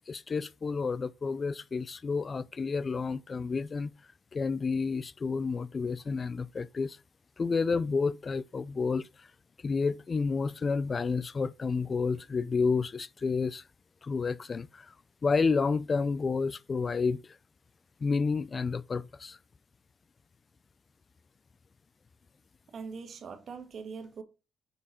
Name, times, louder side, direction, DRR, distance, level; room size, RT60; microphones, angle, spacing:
voice 1, 0.0-3.9 4.3-7.0 7.4-9.3 9.6-13.6 14.0-14.9 15.2-17.4 18.0-19.4, left 4 dB, 35° left, 0.3 m, -30 dB
voice 2, 22.7-24.2, right 5 dB, 55° right, 1.5 m, -42 dB
6.6 x 3.7 x 4.3 m
cardioid pair, 90°, 0 cm